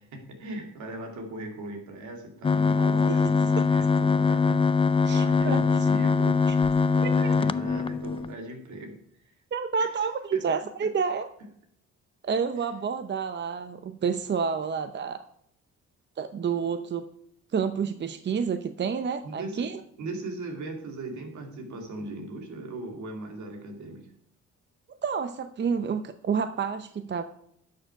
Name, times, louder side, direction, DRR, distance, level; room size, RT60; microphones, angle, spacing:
voice 1, 0.0-4.7 5.1-6.5 6.9-9.3 9.8-9.9 10.3-10.4 10.8-10.9 19.2-24.1, right 2 dB, 70° right, 3 dB, 2.6 m, -38 dB
sound 1, 2.4-8.3, left 5 dB, 20° left, 0.4 m, -23 dB
voice 2, 2.7-3.2 5.0-5.6 6.5-6.6 7.0-7.3 9.5-11.3 12.2-15.2 16.2-17.1 17.5-19.8 25.0-27.2, right 6 dB, 35° right, 10 dB, 0.7 m, -29 dB
11.5 x 6.6 x 4.7 m, 0.71 s
cardioid pair, 90°, 30 cm